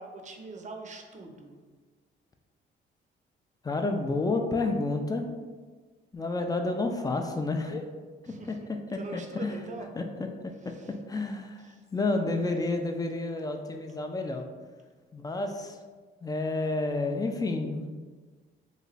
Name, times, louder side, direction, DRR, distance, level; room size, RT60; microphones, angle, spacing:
voice 1, 0.0-1.6 8.3-8.7 8.9-9.9 10.7-10.9 11.6-11.8, right 3 dB, 40° right, 3 dB, 0.6 m, -43 dB
voice 2, 3.6-5.3 6.1-7.9 8.5-8.6 8.9-9.6 10.0-10.1 10.4-10.5 11.1-14.5 15.1-15.8 16.2-17.9, left 2 dB, 20° left, 4 dB, 0.4 m, -30 dB
3.1 x 2.2 x 3.9 m, 1.4 s
cardioid pair, 90°, 20 cm